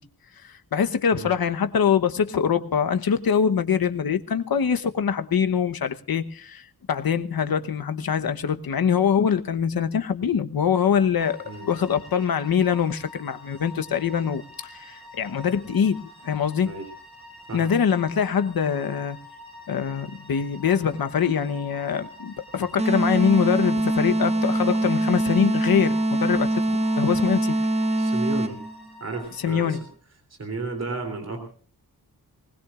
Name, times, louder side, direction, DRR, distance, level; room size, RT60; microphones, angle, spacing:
voice 1, 0.5-11.4 11.6-16.0 16.2-16.7 17.5-19.2 19.7-27.6 29.4-29.8, left 7 dB, 65° left, 9 dB, 1.1 m, -24 dB
sound 1, 11.2-29.8, left 1 dB, ahead, 7.4 m, -46 dB
sound 2, 22.8-28.7, right 1 dB, 15° right, 0.7 m, -23 dB
voice 2, 28.0-28.6 29.0-29.8 30.4-31.5, right 3 dB, 40° right, 5 dB, 3.3 m, -33 dB
20.5 x 19.5 x 2.5 m, 0.43 s
wide cardioid pair, 175°, 38 cm